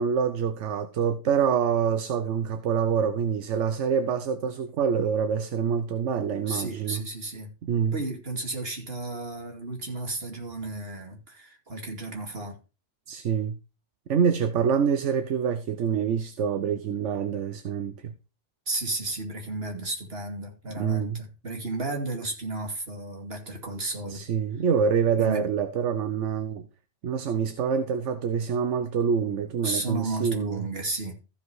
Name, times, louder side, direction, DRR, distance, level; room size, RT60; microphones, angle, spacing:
voice 1, 0.0-7.0 7.6-8.0 13.1-13.6 14.1-18.1 20.8-21.2 24.1-26.7 27.0-30.7, right 7 dB, 75° right, 1.1 m, -26 dB
voice 2, 6.5-7.5 7.9-12.6 18.7-24.3 25.2-25.5 29.6-31.3, right 2 dB, 55° right, 2.8 m, -33 dB
14.5 x 5.4 x 4.7 m
omnidirectional pair, 1.2 m